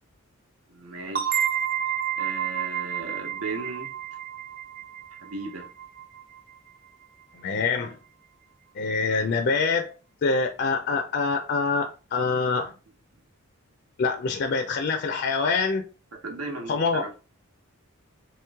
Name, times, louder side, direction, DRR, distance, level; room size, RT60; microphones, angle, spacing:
voice 1, 0.7-1.4 2.2-3.9 5.2-5.7 16.2-17.1, right 3 dB, 90° right, 1.0 m, -36 dB
sound 1, 1.1-6.6, right 9 dB, 40° right, 0.5 m, -30 dB
voice 2, 7.3-8.0 8.8-9.9 10.2-12.7 14.0-15.8 16.7-17.0, left 4 dB, 50° left, 0.4 m, -25 dB
3.1 x 3.0 x 3.5 m
head